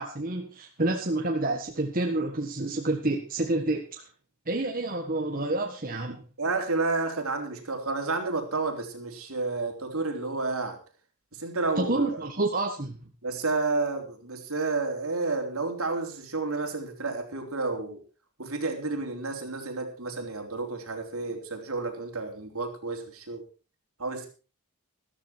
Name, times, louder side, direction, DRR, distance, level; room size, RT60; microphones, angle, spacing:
voice 1, 0.0-4.0 4.5-6.2 11.8-13.0, right 2 dB, 40° right, 2 dB, 1.6 m, -28 dB
voice 2, 6.4-10.8 11.3-12.2 13.2-18.0 18.4-23.4 24.0-24.3, right 3 dB, 70° right, 3 dB, 3.6 m, -31 dB
14.0 x 13.5 x 4.5 m, 0.35 s
head